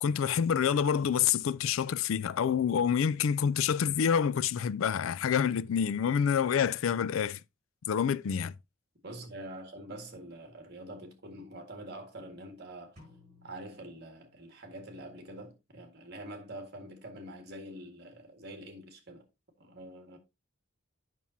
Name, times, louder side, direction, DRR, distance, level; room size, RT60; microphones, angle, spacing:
voice 1, 0.0-7.4 7.9-8.5, left 7 dB, 75° left, 0.4 m, -27 dB
voice 2, 9.0-13.0 13.4-19.3 19.6-20.2, right 1 dB, 55° right, 1.9 m, -45 dB
sound 1, 13.0-14.8, left 2 dB, 35° right, 5.7 m, -59 dB
9.0 x 6.0 x 2.8 m
head